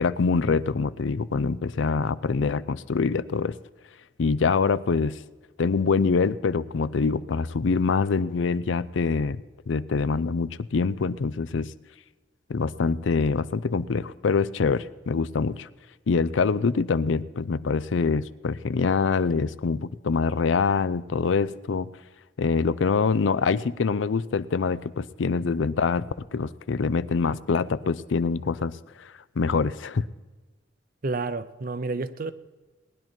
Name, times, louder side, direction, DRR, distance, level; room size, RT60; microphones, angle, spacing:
voice 1, 0.0-3.6 4.2-5.2 5.6-9.4 9.7-11.7 12.5-15.7 16.1-21.9 22.4-26.1 26.3-29.1 29.4-30.0, left 4 dB, 85° left, 0.5 m, -25 dB
voice 2, 31.0-32.3, right 3 dB, 50° right, 0.7 m, -30 dB
19.0 x 10.5 x 4.4 m
head